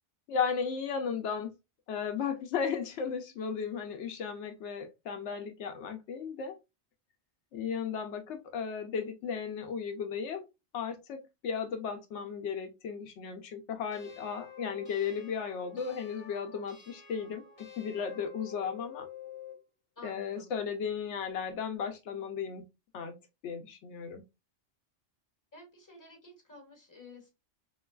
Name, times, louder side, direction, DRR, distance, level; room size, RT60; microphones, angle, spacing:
voice 1, 0.3-1.5 1.9-6.6 7.5-10.4 10.7-17.4 17.8-19.1 20.0-22.6 22.9-23.1 23.4-24.2, left 6 dB, 85° left, 0.9 m, -35 dB
sound 1, 13.9-19.6, left 8 dB, 30° left, 1.0 m, -49 dB
voice 2, 20.0-20.5 25.5-27.3, left 2 dB, 15° left, 1.3 m, -52 dB
3.9 x 2.2 x 2.2 m
omnidirectional pair, 1.2 m